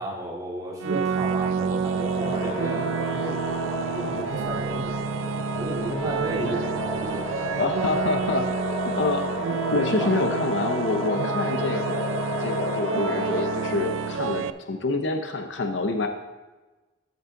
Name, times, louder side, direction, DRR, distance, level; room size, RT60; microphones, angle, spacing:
voice 1, 0.0-3.4 3.9-5.0 5.6-7.4 10.0-10.1, right 1 dB, 20° right, -3 dB, 2.0 m, -33 dB
sound 1, 0.8-14.5, right 6 dB, 85° right, 0.4 m, -29 dB
sound 2, 1.8-14.3, left 1 dB, 50° left, 1.8 m, -32 dB
sound 3, 3.4-9.8, right 2 dB, 50° right, 2.4 m, -45 dB
voice 2, 7.6-8.5 9.0-9.3 9.7-16.1, left 3 dB, 70° left, 5 dB, 0.7 m, -27 dB
13.5 x 5.5 x 3.7 m, 1.2 s
head